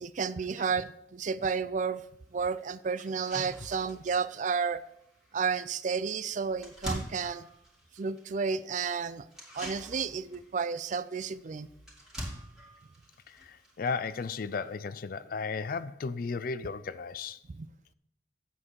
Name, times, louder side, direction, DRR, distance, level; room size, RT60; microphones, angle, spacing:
voice 1, 0.0-2.0 2.3-4.8 5.3-7.5 8.0-9.3 9.5-11.7 17.6-17.7, right 5 dB, 45° right, 0.4 m, -32 dB
sound 1, 2.0-2.1 2.6-2.7 3.0-14.7, equal, 5° right, 2.4 m, -46 dB
voice 2, 13.3-17.4, left 5 dB, 55° left, 0.4 m, -35 dB
8.4 x 7.5 x 4.6 m
head